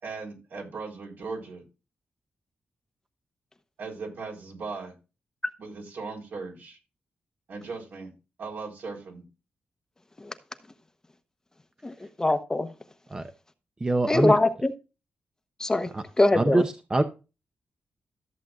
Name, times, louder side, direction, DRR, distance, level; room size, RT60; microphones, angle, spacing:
voice 1, 0.0-1.6 3.8-4.9 5.6-6.8 7.5-8.1 8.4-9.2, right 4 dB, 75° right, 0 dB, 4.2 m, -38 dB
voice 2, 11.8-12.7 14.1-14.7 15.6-15.9 16.2-16.6, left 2 dB, 15° left, 8 dB, 1.0 m, -23 dB
voice 3, 13.8-14.3 15.9-16.0 16.3-17.0, right 2 dB, 20° right, 8 dB, 0.8 m, -24 dB
14.0 x 7.6 x 2.4 m, 0.30 s
cardioid pair, 105°, 4 cm